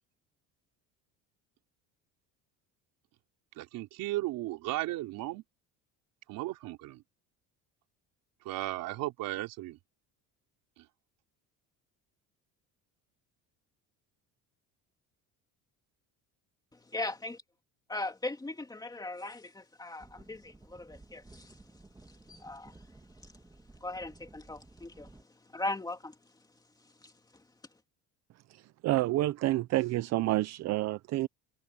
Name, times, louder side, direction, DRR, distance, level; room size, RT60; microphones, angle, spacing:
voice 1, 3.6-5.4 6.3-7.0 8.4-9.8 10.8-10.9, right 17 dB, 70° right, 3.6 m, -35 dB
voice 2, 16.7-17.4 17.9-21.6 22.1-22.9 23.2-23.3 23.8-26.2 26.8-27.4, left 2 dB, 10° left, 2.5 m, -39 dB
sound 1, 20.0-25.2, right 2 dB, 10° right, 2.4 m, -56 dB
voice 3, 28.5-31.3, right 16 dB, 50° right, 0.6 m, -29 dB
cardioid pair, 145°, 34 cm